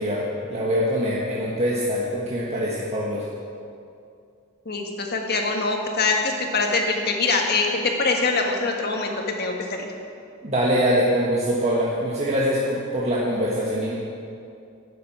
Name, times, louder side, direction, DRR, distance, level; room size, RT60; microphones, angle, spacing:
voice 1, 0.0-3.3 10.4-13.9, equal, 30° right, -5 dB, 1.5 m, -23 dB
voice 2, 4.6-7.7 8.0-9.1 9.4-9.8, left 3 dB, 50° left, 2 dB, 1.7 m, -23 dB
12.5 x 7.5 x 9.0 m, 2.5 s
head